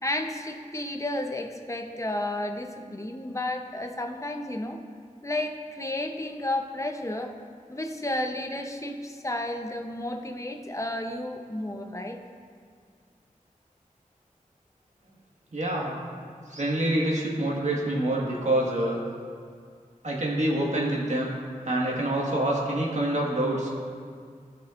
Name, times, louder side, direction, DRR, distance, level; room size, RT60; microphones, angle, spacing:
voice 1, 0.0-4.8 5.2-7.3 7.7-12.2, left 1 dB, 20° left, 4 dB, 0.7 m, -32 dB
voice 2, 15.5-16.0 16.5-19.0 20.0-21.3 21.6-23.7, right 1 dB, 55° right, -3 dB, 1.6 m, -26 dB
16.0 x 5.5 x 2.5 m, 2.1 s
wide cardioid pair, 75°, 14 cm